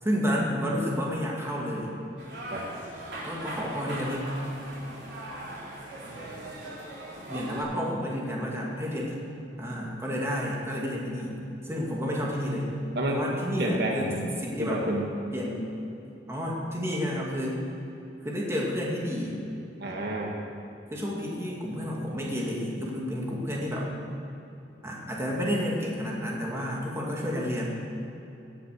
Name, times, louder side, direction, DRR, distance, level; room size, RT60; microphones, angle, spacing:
voice 1, 0.0-1.9 3.2-4.2 7.3-9.1 9.6-11.3 11.6-12.7 13.1-14.1 14.4-14.8 15.3-15.7 16.3-17.6 18.2-19.4 20.9-23.9 24.8-27.8, equal, 15° right, -3 dB, 2.3 m, -30 dB
sound 1, 2.2-7.6, right 1 dB, 80° right, 3.8 m, -39 dB
voice 2, 13.6-14.2 14.6-15.0 19.8-20.4, right 1 dB, 65° right, 0 dB, 1.6 m, -29 dB
17.0 x 8.0 x 6.7 m, 2.9 s
head